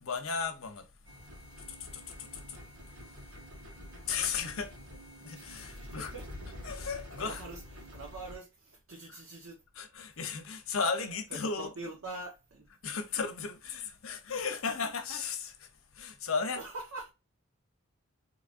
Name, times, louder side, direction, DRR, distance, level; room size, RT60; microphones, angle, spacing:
voice 1, 0.0-0.9 1.9-2.6 4.1-4.7 5.2-6.1 6.6-7.4 9.8-11.7 12.8-15.7 15.9-16.6, left 5 dB, 70° left, 0.8 m, -35 dB
sound 1, 1.1-8.4, left 1 dB, 90° right, 1.4 m, -47 dB
voice 2, 5.7-6.3 6.9-9.6 11.0-12.7 16.6-17.1, right 2 dB, 65° right, 0.9 m, -44 dB
4.0 x 2.9 x 2.5 m
head